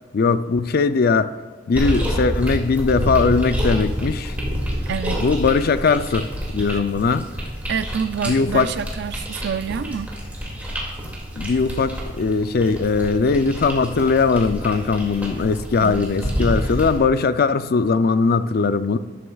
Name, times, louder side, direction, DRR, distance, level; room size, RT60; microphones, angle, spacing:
voice 1, 0.1-1.4 1.7-4.4 5.2-7.3 8.2-8.7 11.4-19.0, left 4 dB, 50° left, 0.4 m, -20 dB
sound 1, 1.7-17.0, equal, 10° right, 2.3 m, -28 dB
voice 2, 4.9-5.2 6.7-6.8 7.7-10.2 15.8-16.1, right 7 dB, 60° right, 0.4 m, -27 dB
13.0 x 11.0 x 2.3 m
head